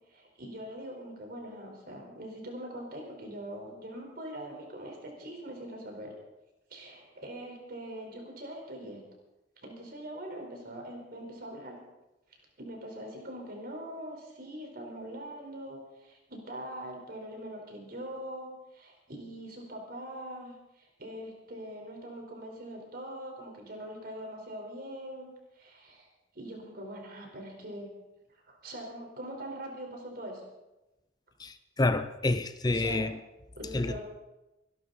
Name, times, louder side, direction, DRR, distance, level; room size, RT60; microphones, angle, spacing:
voice 1, 0.1-6.1 6.7-9.0 9.6-11.8 12.6-25.3 25.5-26.1 26.3-27.9 28.5-30.4 32.7-33.1 33.5-34.0, right 1 dB, 55° right, 1 dB, 4.5 m, -42 dB
voice 2, 31.4-33.2 33.7-34.0, left 2 dB, 20° left, 12 dB, 0.5 m, -28 dB
25.0 x 11.5 x 4.2 m, 0.99 s
head